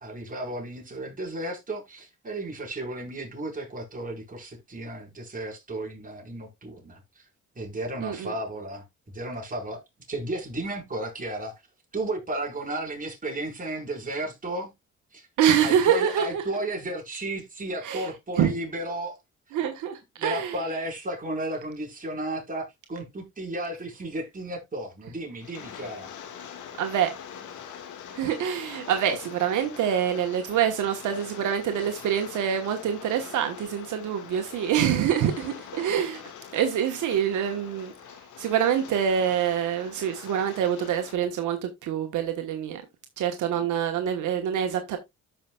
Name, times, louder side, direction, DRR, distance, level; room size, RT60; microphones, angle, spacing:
voice 1, 0.0-7.2 7.5-8.8 9.1-9.8 10.1-11.6 11.9-14.7 15.1-15.3 15.6-19.2 20.2-26.1 43.5-43.6, right 1 dB, 25° right, 4.6 m, -33 dB
voice 2, 8.0-8.3 15.4-16.4 17.8-18.1 18.4-18.5 19.5-20.5 26.8-27.1 28.1-36.2 36.5-37.9 38.4-42.8 43.2-45.0, right 9 dB, 80° right, 1.2 m, -25 dB
Rain, 25.4-41.1, left 8 dB, 80° left, 1.7 m, -44 dB
13.5 x 5.6 x 2.3 m
cardioid pair, 90°, 30 cm